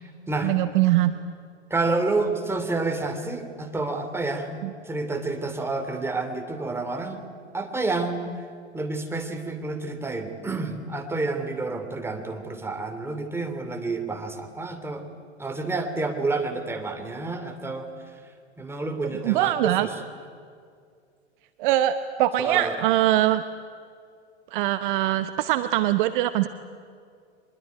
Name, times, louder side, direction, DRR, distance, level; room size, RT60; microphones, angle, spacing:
voice 1, 0.4-1.1 4.6-4.7 19.2-19.9 21.6-23.4 24.5-26.5, right 14 dB, 45° right, 11 dB, 1.0 m, -22 dB
voice 2, 1.7-7.3 7.5-8.2 8.7-15.0 15.4-18.1 18.6-20.0 22.4-22.7, right 3 dB, 5° right, 5 dB, 2.8 m, -29 dB
24.0 x 21.5 x 9.4 m, 2.2 s
figure-of-eight pair, 95°, 35 cm